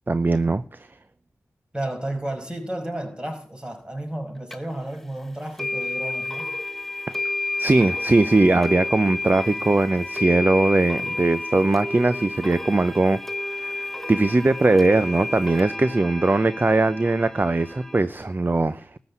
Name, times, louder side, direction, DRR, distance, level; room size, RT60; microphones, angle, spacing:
voice 1, 0.1-0.9 7.6-13.2 13.5-19.0, right 2 dB, 35° right, 0.7 m, -20 dB
voice 2, 1.7-6.5, right 1 dB, 15° right, 5.5 m, -32 dB
sound 1, 4.5-4.6 5.6-18.0, left 2 dB, 5° left, 1.4 m, -31 dB
13.5 x 6.2 x 9.5 m
cardioid pair, 40°, 6 cm